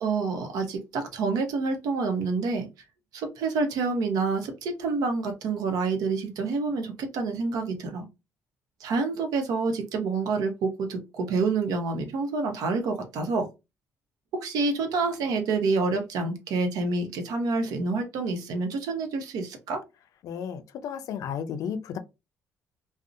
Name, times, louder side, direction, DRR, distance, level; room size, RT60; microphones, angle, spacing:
voice 1, 0.0-2.7 3.1-8.1 8.8-13.5 14.3-19.8, right 4 dB, 75° right, 0.7 m, -28 dB
voice 2, 20.2-22.0, left 7 dB, 65° left, 0.4 m, -33 dB
2.6 x 2.0 x 2.5 m
cardioid pair, 125°, 6 cm